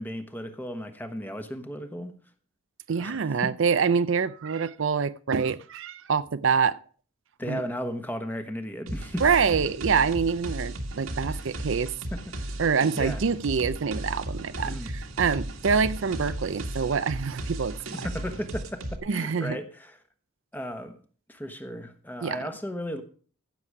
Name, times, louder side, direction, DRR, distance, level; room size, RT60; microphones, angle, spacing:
voice 1, 0.0-2.2 3.0-3.5 7.4-9.2 11.3-11.4 12.1-12.4 13.0-13.2 14.7-14.9 17.9-20.0 20.5-21.0 21.3-23.0, equal, 10° left, 1.1 m, -35 dB
voice 2, 2.9-6.8 7.5-7.6 9.2-11.9 12.6-17.8 19.1-19.6 22.2-22.4, right 6 dB, 65° right, 0.5 m, -26 dB
sound 1, 8.9-19.0, right 1 dB, 85° right, 1.9 m, -35 dB
15.5 x 6.9 x 4.8 m
head